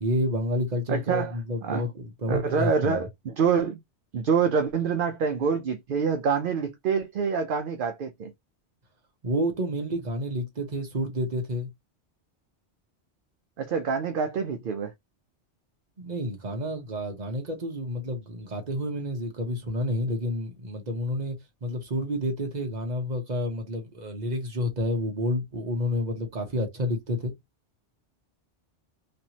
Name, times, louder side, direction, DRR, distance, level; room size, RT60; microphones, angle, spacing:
voice 1, 0.0-3.1 9.2-11.7 16.0-21.4 21.6-27.3, equal, 40° right, 1.1 m, -29 dB
voice 2, 0.9-1.4 1.6-1.8 2.3-3.8 4.1-8.3 13.6-14.9, right 6 dB, 55° right, 0.7 m, -26 dB
3.2 x 3.0 x 2.8 m
omnidirectional pair, 1.2 m